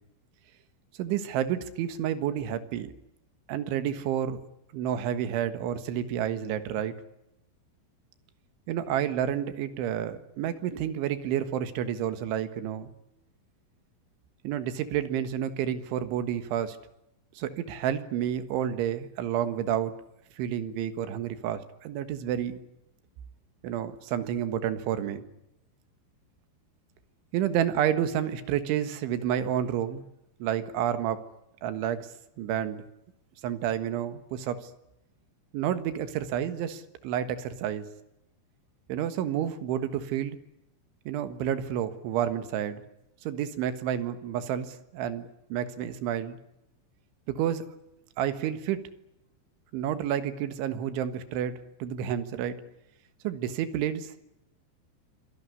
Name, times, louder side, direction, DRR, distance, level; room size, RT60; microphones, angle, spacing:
voice 1, 1.0-2.9 3.5-4.4 4.7-6.9 8.7-12.9 14.4-16.8 17.4-20.0 20.4-22.6 23.6-25.2 27.3-30.0 30.4-31.2 31.6-32.1 32.4-32.8 33.4-34.7 35.5-37.9 38.9-40.4 41.1-42.8 43.2-46.4 47.3-47.7 48.2-48.8 49.7-52.6 53.2-54.1, right 10 dB, 90° right, 11 dB, 4.0 m, -30 dB
26.5 x 18.0 x 9.6 m, 0.87 s
omnidirectional pair, 5.3 m